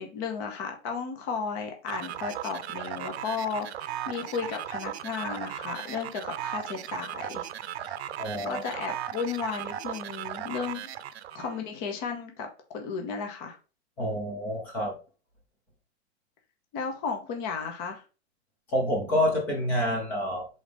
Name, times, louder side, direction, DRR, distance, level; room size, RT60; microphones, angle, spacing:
voice 1, 0.0-7.5 7.8-8.0 8.5-10.9 11.3-12.5 12.7-13.6 16.7-18.0, left 5 dB, 25° left, 3 dB, 0.9 m, -34 dB
sound 1, 1.9-11.6, right 10 dB, 70° right, 0.6 m, -37 dB
voice 2, 8.2-8.6 14.0-15.0 18.7-20.5, left 1 dB, 5° left, 1 dB, 0.4 m, -28 dB
4.9 x 4.0 x 5.1 m, 0.34 s
supercardioid pair, 175°, 33 cm